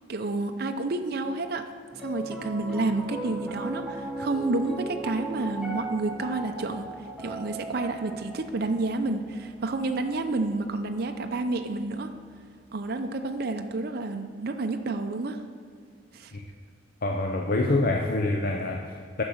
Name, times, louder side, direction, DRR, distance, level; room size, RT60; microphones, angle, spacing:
voice 1, 0.1-1.7 2.0-12.1 12.7-15.4 16.1-16.3, right 2 dB, 55° right, 5 dB, 0.6 m, -30 dB
Piano, 1.9-12.3, right 1 dB, ahead, 1.2 m, -38 dB
voice 2, 17.0-19.2, left 2 dB, 50° left, 3 dB, 0.6 m, -26 dB
10.0 x 6.2 x 7.1 m, 2.1 s
head